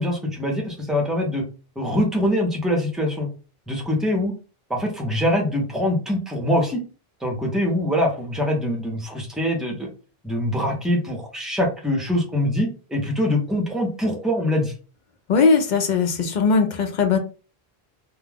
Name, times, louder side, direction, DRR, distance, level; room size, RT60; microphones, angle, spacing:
voice 1, 0.0-1.4 1.8-3.3 3.7-4.3 4.7-6.8 7.2-9.9 10.2-14.7, left 1 dB, ahead, 1 dB, 0.5 m, -23 dB
voice 2, 15.3-17.2, left 4 dB, 55° left, 6 dB, 0.6 m, -19 dB
2.3 x 2.1 x 3.3 m, 0.36 s
omnidirectional pair, 1.0 m